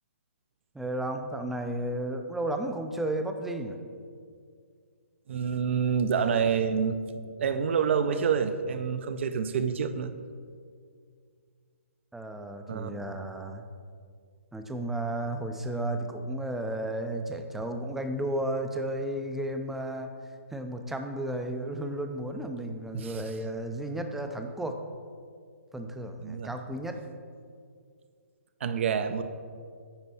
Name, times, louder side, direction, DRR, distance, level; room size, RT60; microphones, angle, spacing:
voice 1, 0.7-3.8 12.1-13.6 14.5-20.1 20.5-24.8 25.7-27.0, right 1 dB, 5° right, 5 dB, 0.4 m, -33 dB
voice 2, 5.3-7.0 7.2-10.1 12.7-12.9 22.9-23.1 26.2-26.6 28.6-29.2, right 7 dB, 55° right, 10 dB, 0.5 m, -27 dB
9.7 x 4.5 x 4.1 m, 2.1 s
hypercardioid pair, 145°, 8 cm